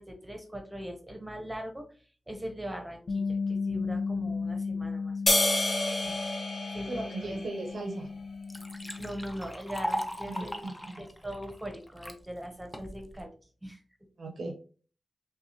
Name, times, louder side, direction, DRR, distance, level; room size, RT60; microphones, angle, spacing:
voice 1, 0.0-1.8 2.3-5.4 6.0-6.2 6.7-7.4 9.0-10.7 11.0-13.3 13.6-13.8, equal, 10° right, 0.9 m, -41 dB
Bass guitar, 3.1-9.3, left 4 dB, 75° left, 0.6 m, -35 dB
sound 1, 5.3-7.9, left 1 dB, 30° left, 0.9 m, -29 dB
voice 2, 6.9-8.1 10.2-11.0 14.2-14.5, right 2 dB, 75° right, 0.8 m, -37 dB
Liquid, 7.7-7.8 8.2-12.2 12.7-13.2, equal, 5° left, 0.5 m, -38 dB
5.9 x 2.3 x 2.8 m
wide cardioid pair, 150°, 0 cm